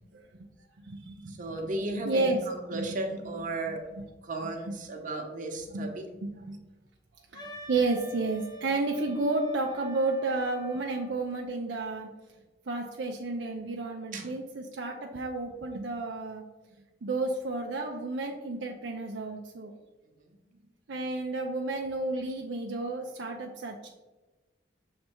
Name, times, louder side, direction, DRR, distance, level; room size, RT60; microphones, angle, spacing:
voice 1, 0.8-1.3 2.0-2.4 2.7-2.9 5.7-5.9 6.2-6.6 7.3-12.1 12.7-16.4 17.0-19.7 20.9-23.9, right 2 dB, 75° right, 1 dB, 0.6 m, -31 dB
voice 2, 1.3-3.8 4.2-6.1 14.1-14.3 20.2-20.3, right 2 dB, 45° right, 2 dB, 1.0 m, -35 dB
Wind instrument woodwind instrument, 7.3-11.2, left 1 dB, 20° left, 0.8 m, -47 dB
6.6 x 3.3 x 4.4 m, 1.1 s
head